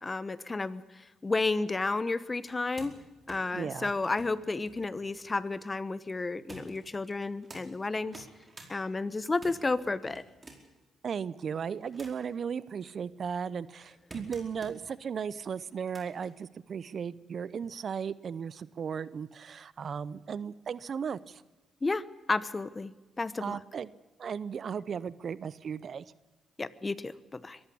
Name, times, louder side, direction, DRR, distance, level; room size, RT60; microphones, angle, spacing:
voice 1, 0.0-0.8 1.2-3.0 3.3-8.3 8.7-10.2 21.8-22.9 23.2-23.6 26.6-27.6, left 3 dB, 25° left, 17 dB, 1.0 m, -32 dB
sound 1, 2.4-5.7 6.5-7.6 8.0-8.7 9.1-10.8 11.4-12.3 12.9-14.9 15.7-16.3 17.4-17.5, right 2 dB, 30° right, 4.7 m, -52 dB
voice 2, 3.5-3.9 11.0-21.4 23.4-23.9 24.2-26.0, right 7 dB, 55° right, 19 dB, 0.7 m, -36 dB
22.5 x 14.5 x 8.6 m, 1.1 s
supercardioid pair, 70°, 0 cm